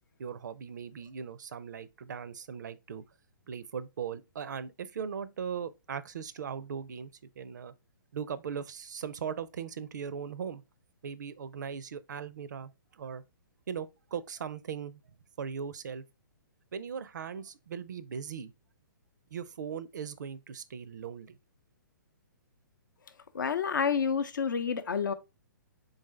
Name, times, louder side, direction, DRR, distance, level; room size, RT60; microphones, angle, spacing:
voice 1, 0.2-3.0 3.5-7.1 7.4-7.7 8.1-10.6 11.0-13.2 13.7-15.0 15.4-16.0 16.7-18.5 19.3-21.4, right 7 dB, 60° right, 0.5 m, -39 dB
voice 2, 23.3-25.1, left 6 dB, 65° left, 0.6 m, -29 dB
4.0 x 3.6 x 3.2 m
figure-of-eight pair, 125°, 11 cm